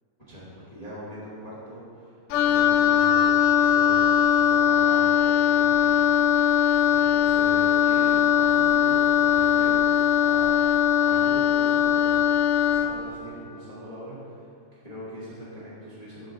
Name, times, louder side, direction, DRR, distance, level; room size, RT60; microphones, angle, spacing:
voice 1, 0.3-3.3 3.6-6.6 6.9-9.8 10.2-10.5 11.0-12.2 12.6-14.5 14.8-16.3, equal, 15° left, -10 dB, 1.9 m, -41 dB
Wind instrument woodwind instrument, 2.3-13.0, left 9 dB, 80° left, 1.9 m, -20 dB
12.5 x 5.3 x 4.0 m, 2.4 s
omnidirectional pair, 3.7 m